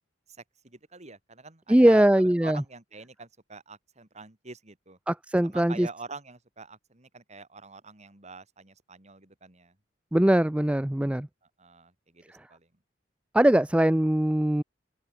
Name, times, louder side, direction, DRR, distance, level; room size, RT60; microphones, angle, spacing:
voice 1, 0.3-5.0 5.4-9.8 11.6-12.2 12.5-12.7, right 4 dB, 40° right, 3.3 m, -45 dB
voice 2, 1.7-2.6 5.1-5.9 10.1-11.3 13.3-14.6, right 1 dB, 5° right, 0.4 m, -21 dB
open air
head